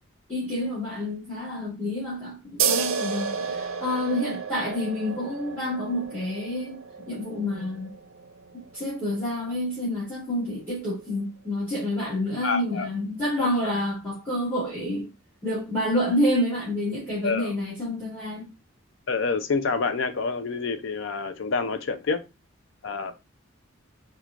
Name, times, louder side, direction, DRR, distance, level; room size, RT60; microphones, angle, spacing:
voice 1, 0.3-6.8 7.1-7.9 8.7-15.1 15.4-18.5, left 1 dB, 10° left, 1.8 m, -28 dB
sound 1, 2.6-9.7, right 6 dB, 70° right, 0.5 m, -32 dB
voice 2, 12.4-12.9 13.2-13.5 17.2-17.5 19.1-22.2 22.8-23.2, left 4 dB, 60° left, 0.5 m, -27 dB
4.4 x 2.4 x 2.4 m
head